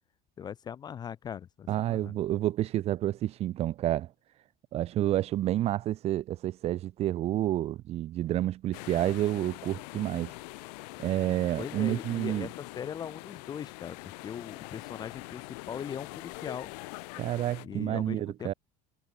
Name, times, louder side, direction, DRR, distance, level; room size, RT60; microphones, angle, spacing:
voice 1, 0.4-2.1 11.6-16.7 17.6-18.5, left 8 dB, 20° left, 0.7 m, -40 dB
voice 2, 1.7-4.1 4.7-10.3 11.0-12.5 17.2-18.5, right 13 dB, 30° right, 0.8 m, -29 dB
sound 1, 8.7-17.7, left 27 dB, 75° left, 3.4 m, -44 dB
cardioid pair, 175°, 21 cm